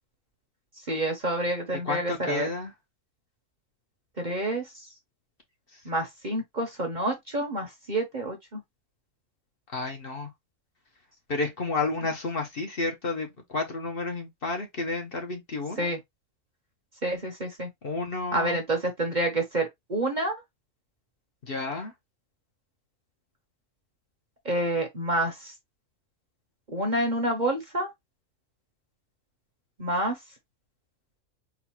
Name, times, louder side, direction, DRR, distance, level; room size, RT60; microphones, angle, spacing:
voice 1, 0.9-2.5 4.2-4.9 5.8-8.6 15.8-16.0 17.0-17.7 18.3-20.4 24.4-25.5 26.7-27.9 29.8-30.2, right 1 dB, 35° right, 0.9 m, -28 dB
voice 2, 1.9-2.7 9.7-10.3 11.3-13.3 13.5-15.9 17.8-18.6 21.5-21.9, left 3 dB, 45° left, 1.2 m, -31 dB
4.1 x 2.5 x 4.4 m
omnidirectional pair, 1.4 m